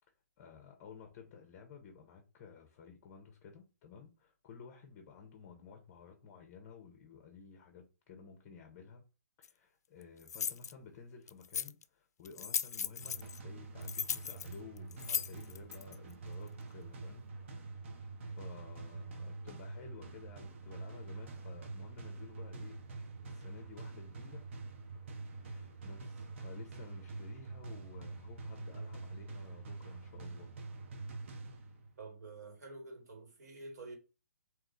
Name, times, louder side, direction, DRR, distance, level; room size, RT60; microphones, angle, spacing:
voice 1, 0.4-9.0 9.4-17.3 17.7-22.8 23.2-24.4 25.2-30.5, left 6 dB, 25° left, 0.7 m, -54 dB
sound 1, 9.4-9.5 10.3-10.7 11.3-11.8 12.2-13.4 13.8-15.9, left 7 dB, 70° left, 0.4 m, -37 dB
sound 2, 13.0-32.0, right 3 dB, 45° right, 0.8 m, -46 dB
voice 2, 32.0-34.0, right 3 dB, 75° right, 1.8 m, -48 dB
3.6 x 2.9 x 3.7 m
hypercardioid pair, 165°, 9 cm